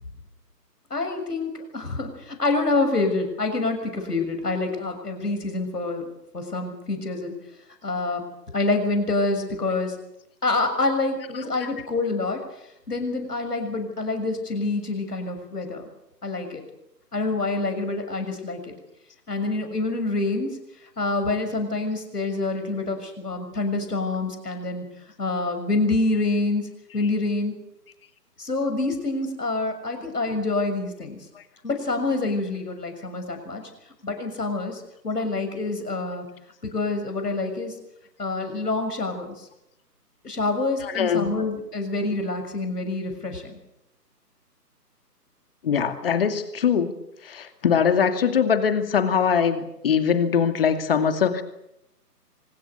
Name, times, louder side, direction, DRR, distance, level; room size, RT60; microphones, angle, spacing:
voice 1, 0.9-7.3 7.8-8.2 8.5-10.0 10.4-15.8 16.2-16.6 17.1-18.7 19.3-20.6 21.0-24.8 25.2-27.5 28.4-31.3 31.6-33.6 34.0-36.2 36.6-37.7 38.2-39.5 40.2-43.6, left 3 dB, 70° left, 6 dB, 6.8 m, -27 dB
voice 2, 40.8-41.3 45.6-46.9 47.2-51.4, left 7 dB, 35° left, 8 dB, 2.5 m, -22 dB
25.0 x 20.5 x 8.1 m, 0.82 s
figure-of-eight pair, 145°, 48 cm